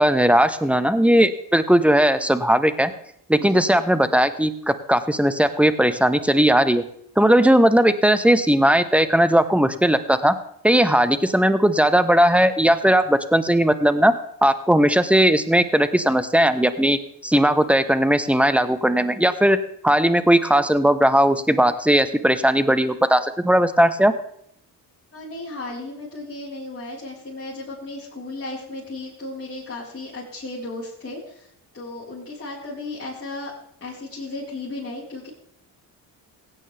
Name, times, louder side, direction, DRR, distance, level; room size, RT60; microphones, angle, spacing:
voice 1, 0.0-2.9 3.3-6.8 7.2-10.3 10.6-14.1 14.4-19.6 19.8-24.1, right 1 dB, 5° right, 12 dB, 1.1 m, -18 dB
voice 2, 25.1-33.5 33.8-35.3, left 2 dB, 30° left, -9 dB, 4.7 m, -35 dB
16.5 x 9.2 x 3.5 m, 0.70 s
supercardioid pair, 60°, 43 cm